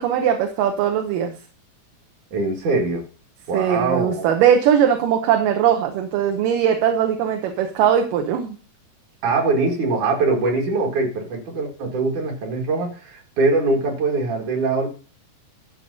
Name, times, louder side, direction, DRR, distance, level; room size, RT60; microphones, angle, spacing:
voice 1, 0.0-1.3 3.5-8.6, right 9 dB, 80° right, 4 dB, 2.6 m, -20 dB
voice 2, 2.3-3.1 3.5-4.3 9.2-14.9, right 3 dB, 65° right, 1 dB, 3.3 m, -22 dB
12.0 x 5.5 x 5.3 m, 0.37 s
omnidirectional pair, 3.8 m